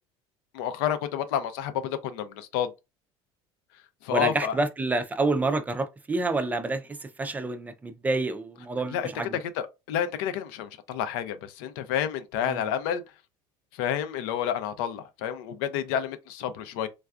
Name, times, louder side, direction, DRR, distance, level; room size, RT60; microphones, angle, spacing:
voice 1, 0.5-2.7 4.0-4.6 8.9-9.1 9.5-13.0 13.7-16.9, left 9 dB, 85° left, 0.5 m, -29 dB
voice 2, 4.1-9.4 12.4-12.6, right 2 dB, 15° right, 0.4 m, -28 dB
3.3 x 2.3 x 2.4 m
cardioid pair, 130°, 12 cm